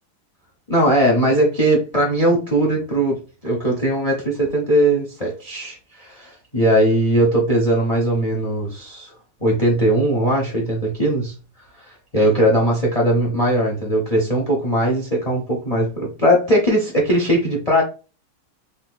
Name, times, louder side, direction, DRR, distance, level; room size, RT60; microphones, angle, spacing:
voice 1, 0.7-3.2 3.4-9.1 9.4-11.3 11.9-17.8, right 1 dB, 75° left, 0 dB, 0.3 m, -19 dB
3.9 x 2.8 x 2.2 m, 0.33 s
omnidirectional pair, 2.4 m